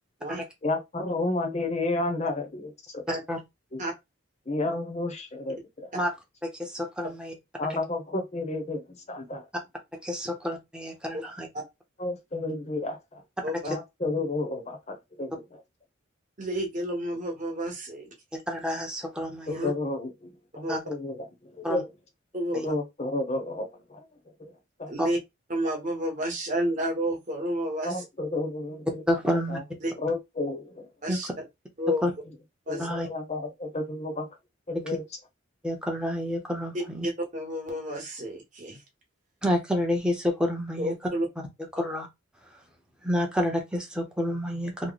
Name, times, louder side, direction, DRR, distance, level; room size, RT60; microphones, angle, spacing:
voice 1, 0.6-3.0 3.7-3.8 4.5-5.9 7.6-9.5 12.0-13.2 13.7-15.6 19.5-21.9 22.5-24.0 24.4-24.5 24.8-24.9 27.8-29.0 29.5-29.6 30.0-30.9 32.7-34.3 34.7-35.0, left 2 dB, 35° left, 0.8 m, -32 dB
voice 2, 3.1-3.4 5.9-6.1 6.4-7.3 10.0-11.5 13.5-13.6 18.3-19.5 20.7-20.8 21.6-21.8 22.5-22.6 25.0-25.1 29.1-29.6 31.1-31.2 32.0-32.1 32.8-33.1 35.6-37.1 39.4-40.9 41.7-42.1 43.0-44.9, equal, 5° right, 0.7 m, -29 dB
voice 3, 16.4-18.1 19.5-19.7 20.6-20.8 22.3-22.7 24.9-25.2 25.5-28.0 29.8-29.9 31.0-31.3 31.8-32.0 32.7-32.9 37.0-38.8 40.8-41.3, equal, 35° right, 1.1 m, -30 dB
3.0 x 2.1 x 3.9 m
head